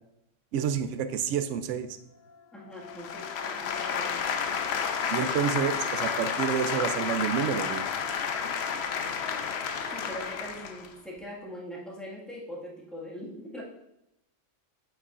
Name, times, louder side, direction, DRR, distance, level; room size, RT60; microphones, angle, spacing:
voice 1, 0.5-1.9 5.1-7.9, right 8 dB, 75° right, 10 dB, 0.9 m, -29 dB
sound 1, 1.9-11.1, left 4 dB, 85° left, 1.2 m, -48 dB
voice 2, 2.5-4.4 9.9-13.6, equal, ahead, -5 dB, 1.7 m, -42 dB
sound 2, 2.8-10.9, left 6 dB, 65° left, 0.8 m, -31 dB
8.3 x 8.1 x 2.5 m, 0.87 s
omnidirectional pair, 1.3 m